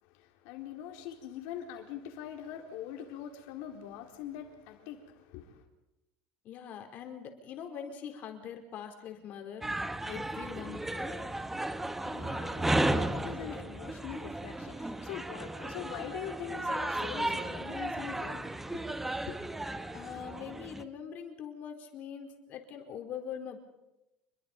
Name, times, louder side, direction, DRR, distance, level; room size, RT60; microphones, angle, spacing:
voice 1, 0.0-5.6 11.7-19.5, left 10 dB, 75° left, 4.2 m, -43 dB
voice 2, 6.4-11.4 19.9-23.6, left 8 dB, 50° left, 4.6 m, -43 dB
sound 1, 9.6-20.8, right 1 dB, 5° right, 1.2 m, -34 dB
28.0 x 23.0 x 5.5 m
cardioid pair, 140°, 4 cm